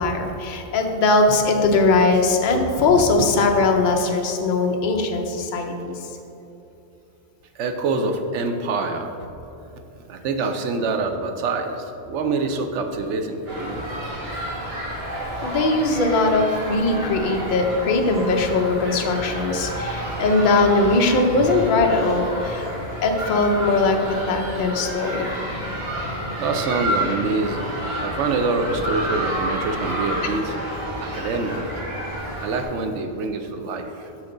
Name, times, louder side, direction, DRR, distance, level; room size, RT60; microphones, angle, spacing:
voice 1, 0.0-5.9 15.4-22.7 23.0-25.2, left 3 dB, 50° left, 3 dB, 0.7 m, -20 dB
voice 2, 7.5-9.2 9.9-13.8 20.0-20.1 26.4-31.7 32.4-34.1, right 3 dB, 80° right, 6 dB, 0.9 m, -26 dB
sound 1, 13.5-32.6, equal, 55° right, 1.6 m, -30 dB
6.6 x 5.9 x 3.8 m, 3.0 s
omnidirectional pair, 1.2 m